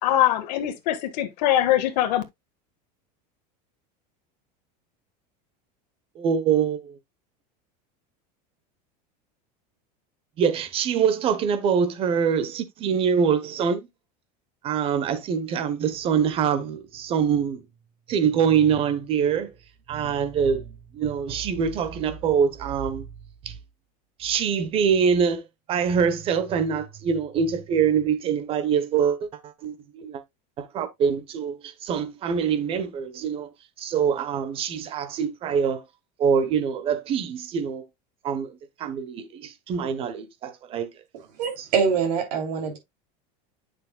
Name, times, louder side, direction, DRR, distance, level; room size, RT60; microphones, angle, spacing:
voice 1, 0.0-2.2, left 12 dB, 75° left, 1.5 m, -22 dB
voice 2, 6.2-6.9 10.4-13.9 14.6-17.6 18.1-19.5 19.9-23.1 23.5-23.6 24.2-25.4 25.7-30.2 30.6-33.5 33.8-35.8 36.2-37.8 38.2-38.5 38.8-40.9, right 7 dB, 25° right, 0.9 m, -24 dB
voice 3, 41.4-42.8, right 6 dB, 90° right, 3.0 m, -24 dB
9.6 x 6.3 x 2.2 m
supercardioid pair, 175°, 21 cm